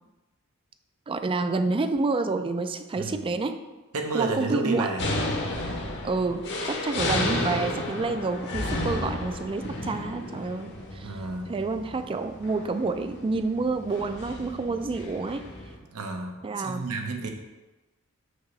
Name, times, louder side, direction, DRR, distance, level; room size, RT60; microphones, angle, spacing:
voice 1, 1.1-3.6 4.1-4.9 6.0-15.5 16.4-16.9, right 3 dB, 25° right, 9 dB, 0.3 m, -29 dB
voice 2, 3.9-5.1 8.7-8.9 11.0-11.5 15.9-17.3, right 3 dB, 80° right, 3 dB, 0.8 m, -31 dB
sound 1, 5.0-15.8, left 1 dB, 55° left, 1.0 m, -33 dB
6.2 x 3.0 x 5.4 m, 1.1 s
head